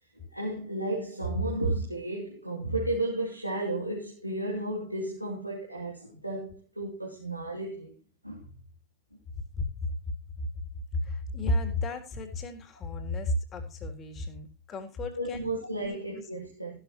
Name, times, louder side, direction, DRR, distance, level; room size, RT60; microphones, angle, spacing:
voice 1, 0.2-7.9 8.2-8.6 15.1-16.8, right 2 dB, 90° right, 3.1 m, -33 dB
voice 2, 10.9-15.5 15.8-16.0, left 1 dB, 25° left, 3.7 m, -32 dB
15.5 x 12.0 x 2.9 m
figure-of-eight pair, 90°, 0 cm